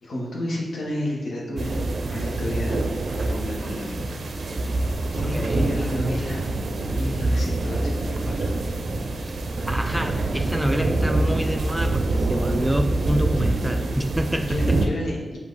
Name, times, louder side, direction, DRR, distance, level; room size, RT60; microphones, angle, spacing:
voice 1, 0.0-4.8 5.1-6.4 6.7-8.5 13.4-13.5 14.4-15.4, left 1 dB, 75° left, -3 dB, 1.1 m, -32 dB
sound 1, 1.6-14.9, right 2 dB, 75° right, 0.4 m, -25 dB
voice 2, 5.2-5.7 9.7-14.8, equal, 5° right, 6 dB, 0.3 m, -27 dB
5.1 x 2.7 x 3.9 m, 1.4 s
cardioid pair, 75°, 0 cm